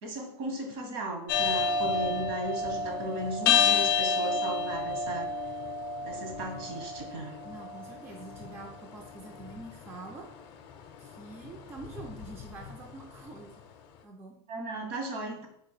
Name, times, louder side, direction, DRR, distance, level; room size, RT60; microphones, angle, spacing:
voice 1, 0.0-5.3 6.0-7.4 14.5-15.5, right 1 dB, 60° right, 3 dB, 1.2 m, -36 dB
sound 1, 1.3-13.4, left 5 dB, 40° left, 0.5 m, -31 dB
voice 2, 7.4-10.3 11.0-13.5 14.0-14.4, right 3 dB, 15° right, 2 dB, 0.4 m, -45 dB
4.4 x 2.5 x 4.8 m, 0.73 s
supercardioid pair, 165°, 14 cm